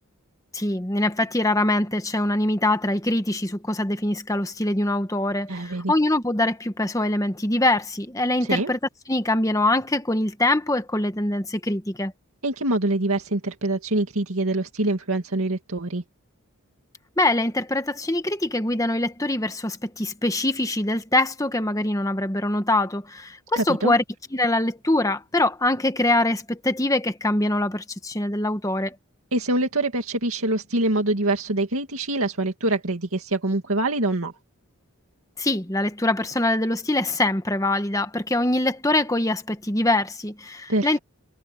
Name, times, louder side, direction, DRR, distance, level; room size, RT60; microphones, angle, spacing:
voice 1, 0.5-8.8 9.1-12.1 17.2-24.0 24.3-29.0 35.4-41.0, left 1 dB, 15° left, 1.2 m, -23 dB
voice 2, 5.5-5.9 8.5-8.7 12.4-16.0 23.6-23.9 29.3-34.3 40.7-41.0, right 2 dB, 75° right, 2.2 m, -25 dB
head